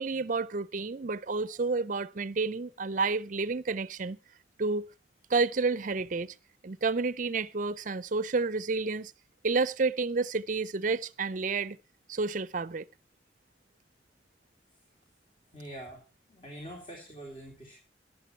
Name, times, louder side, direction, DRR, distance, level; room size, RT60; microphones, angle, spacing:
voice 1, 0.0-4.2 4.6-4.8 5.3-6.3 6.6-9.1 9.4-11.8 12.1-12.8, right 4 dB, 45° right, 0.5 m, -30 dB
voice 2, 15.5-16.0 16.3-17.8, right 1 dB, 30° left, 3.6 m, -44 dB
14.5 x 11.0 x 4.4 m
head